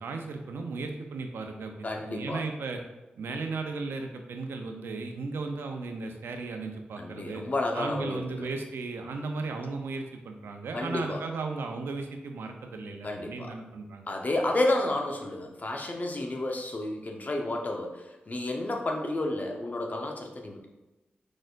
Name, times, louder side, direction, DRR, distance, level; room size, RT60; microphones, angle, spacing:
voice 1, 0.0-2.8 3.2-7.4 7.7-14.1, right 3 dB, 85° right, 4 dB, 0.6 m, -35 dB
voice 2, 1.8-2.4 7.0-8.5 10.7-11.2 13.0-13.5 14.1-20.7, left 2 dB, 45° left, 2 dB, 0.9 m, -31 dB
4.9 x 4.2 x 2.5 m, 1.1 s
cardioid pair, 45°, 4 cm